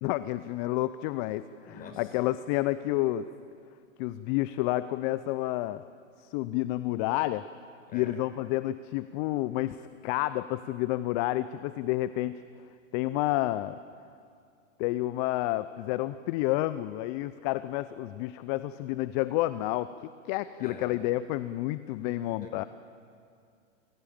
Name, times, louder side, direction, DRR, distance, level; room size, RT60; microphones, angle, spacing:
voice 1, 0.0-3.3 4.0-5.8 6.2-7.5 7.9-12.4 12.9-13.8 14.8-19.9 20.2-22.6, left 16 dB, 35° left, 14 dB, 0.7 m, -30 dB
voice 2, 1.7-2.1 7.9-8.2 20.6-21.0 21.9-22.5, left 4 dB, 20° left, 4 dB, 5.0 m, -46 dB
28.0 x 16.5 x 8.9 m, 2.4 s
hypercardioid pair, 120°, 40 cm